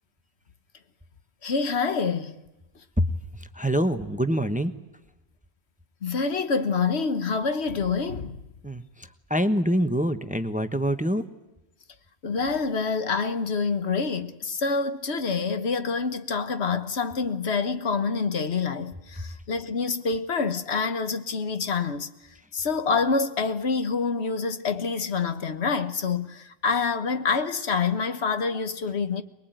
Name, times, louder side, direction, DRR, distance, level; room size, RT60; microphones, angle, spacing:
voice 1, 1.4-2.4 6.0-8.4 12.2-22.1 22.5-29.2, left 5 dB, 75° left, 1.5 m, -27 dB
voice 2, 3.3-4.7 8.6-11.2, equal, 10° right, 1.0 m, -25 dB
23.5 x 21.5 x 9.1 m
omnidirectional pair, 1.1 m